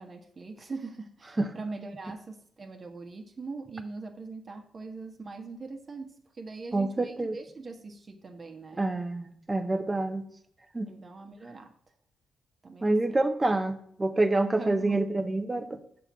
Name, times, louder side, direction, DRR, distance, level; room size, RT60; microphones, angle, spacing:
voice 1, 0.0-8.8 10.9-11.7 12.6-13.0 14.6-15.0, right 3 dB, 45° right, 4 dB, 1.3 m, -41 dB
voice 2, 6.7-7.4 8.8-10.2 10.7-10.9 12.8-15.8, right 2 dB, 25° right, 9 dB, 0.9 m, -27 dB
6.7 x 3.7 x 6.1 m, 0.63 s
hypercardioid pair, 45°, 0 cm